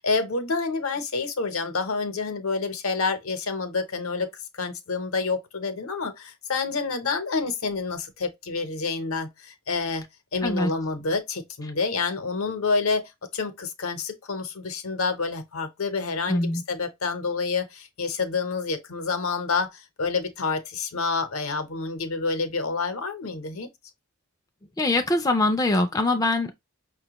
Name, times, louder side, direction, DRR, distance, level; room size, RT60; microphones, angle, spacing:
voice 1, 0.0-10.1 10.3-23.7, left 4 dB, 80° left, 0.8 m, -28 dB
voice 2, 16.3-16.6 24.8-26.5, left 2 dB, 15° left, 0.3 m, -23 dB
5.4 x 2.2 x 2.9 m
head